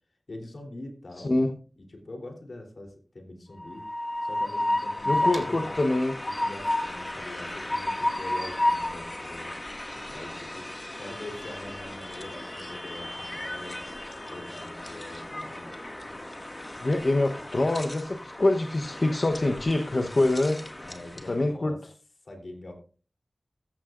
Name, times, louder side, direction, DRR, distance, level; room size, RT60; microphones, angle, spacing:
voice 1, 0.3-1.5 1.8-3.8 4.2-5.8 6.2-9.6 10.0-10.7 11.0-15.7 20.8-21.8 22.2-22.7, left 1 dB, 75° left, 2 dB, 3.5 m, -43 dB
Train, 3.6-21.4, left 1 dB, 35° left, 2.1 m, -33 dB
voice 2, 5.1-6.1 16.8-20.6 21.3-21.7, left 2 dB, 60° left, 4 dB, 1.1 m, -25 dB
sound 1, 5.3-11.1, right 2 dB, 45° right, 2.8 m, -51 dB
14.5 x 14.0 x 2.6 m, 0.40 s
wide cardioid pair, 45°, 0 cm